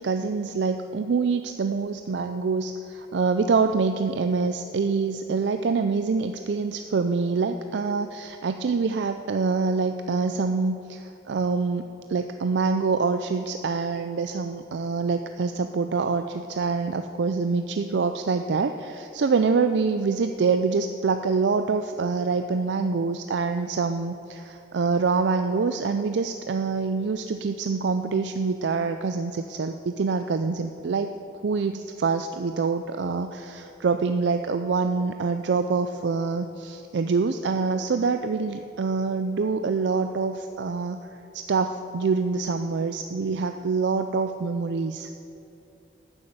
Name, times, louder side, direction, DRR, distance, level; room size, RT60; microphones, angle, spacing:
voice 1, 0.0-31.1 31.4-41.1 41.3-45.1, right 4 dB, 65° right, 8 dB, 0.4 m, -25 dB
12.0 x 7.2 x 8.0 m, 2.8 s
head